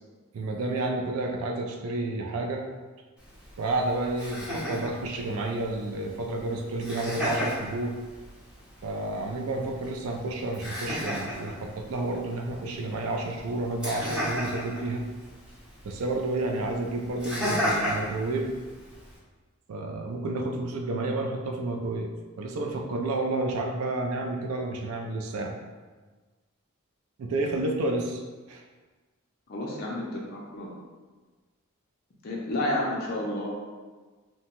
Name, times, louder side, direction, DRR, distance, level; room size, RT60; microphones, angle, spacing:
voice 1, 0.3-2.6 3.6-8.0 8.8-15.0 15.8-18.5 19.7-22.1 22.4-25.6 27.2-28.2 28.5-28.6, right 2 dB, 75° right, 2 dB, 0.4 m, -30 dB
Laughter, 3.2-19.2, equal, 5° right, 0.7 m, -35 dB
voice 2, 29.5-30.8 32.2-33.5, left 1 dB, 45° left, -3 dB, 0.4 m, -31 dB
2.7 x 2.1 x 2.9 m, 1.4 s
head